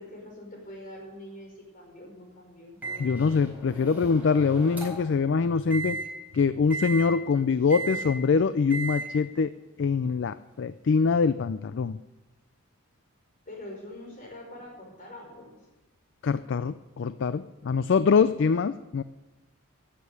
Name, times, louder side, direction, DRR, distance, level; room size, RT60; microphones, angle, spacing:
voice 1, 0.0-2.8 13.5-15.6, left 1 dB, 40° left, 0 dB, 5.4 m, -44 dB
Microwave oven, 2.8-5.1 5.7-6.0 6.7-7.0 7.7-8.1 8.7-9.0, right 3 dB, 10° right, 4.2 m, -35 dB
voice 2, 3.0-6.0 6.3-9.5 9.8-12.0 16.2-19.0, left 5 dB, 55° left, 14 dB, 0.4 m, -24 dB
17.0 x 7.5 x 8.2 m, 1.1 s
head